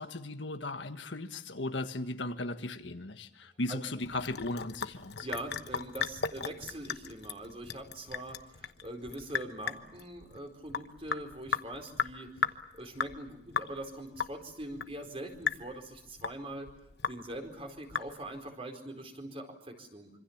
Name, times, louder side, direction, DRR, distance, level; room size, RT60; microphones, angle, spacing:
voice 1, 0.0-5.3, left 2 dB, 85° left, 7 dB, 1.6 m, -37 dB
Sink (filling or washing) / Drip, 4.0-18.5, left 6 dB, 65° left, 1.1 m, -37 dB
voice 2, 5.2-16.7 17.1-20.1, right 1 dB, 35° right, 5 dB, 4.5 m, -43 dB
26.0 x 25.5 x 7.3 m, 0.82 s
head